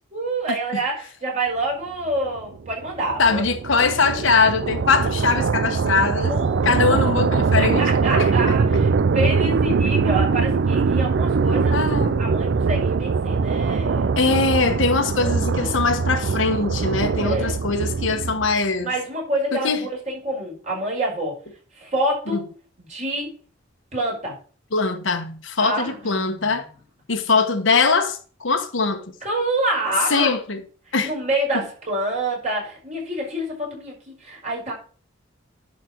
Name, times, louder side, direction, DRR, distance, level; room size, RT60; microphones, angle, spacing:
voice 1, 0.1-3.4 3.7-3.9 6.3-7.2 7.5-11.8 12.2-14.1 15.2-15.9 17.2-17.6 18.8-21.4 21.7-22.5 22.8-23.3 23.9-24.4 25.6-26.5 29.2-30.3 31.0-34.7, right 1 dB, 40° right, 5.1 m, -27 dB
sound 1, 2.4-18.6, right 5 dB, 65° right, 0.4 m, -22 dB
voice 2, 3.2-6.3 6.6-8.3 11.7-12.3 14.2-18.9 19.5-19.8 22.3-22.4 24.7-26.7 27.1-29.0 30.1-30.6 30.9-31.1, left 4 dB, 70° left, 1.2 m, -21 dB
11.0 x 4.6 x 6.0 m
head